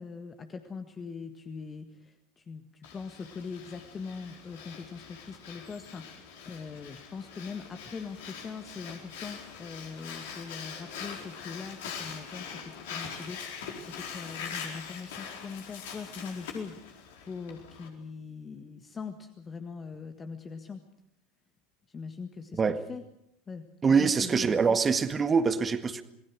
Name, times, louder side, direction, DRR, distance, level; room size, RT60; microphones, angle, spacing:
voice 1, 0.0-20.8 21.9-22.6 22.9-23.0 23.5-24.8, left 5 dB, 25° left, 7 dB, 1.7 m, -42 dB
Breathing, 2.8-17.9, left 6 dB, 65° left, 4.4 m, -43 dB
voice 2, 23.8-26.0, right 5 dB, 20° right, 10 dB, 1.7 m, -24 dB
27.5 x 20.0 x 6.3 m, 0.76 s
figure-of-eight pair, 80°, 0 cm